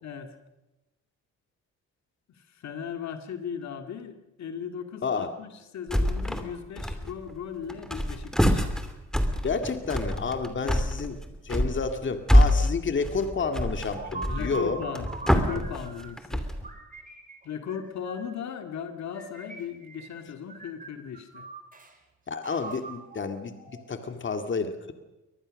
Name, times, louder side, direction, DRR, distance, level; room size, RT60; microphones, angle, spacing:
voice 1, 0.0-0.3 2.4-8.7 10.6-10.8 14.2-16.5 17.4-21.5, left 7 dB, 65° left, 6 dB, 2.2 m, -37 dB
sound 1, 5.9-6.5 6.8-7.4 7.7-16.7, equal, ahead, 2.8 m, -25 dB
voice 2, 9.4-11.2 11.4-14.8 22.3-24.9, left 4 dB, 40° left, 7 dB, 2.1 m, -30 dB
sound 2, 13.4-16.2 16.6-18.4 19.1-20.2 20.5-21.9 22.4-24.2, right 4 dB, 25° right, 4.1 m, -43 dB
24.0 x 18.5 x 6.5 m, 1.0 s
cardioid pair, 90°, 30 cm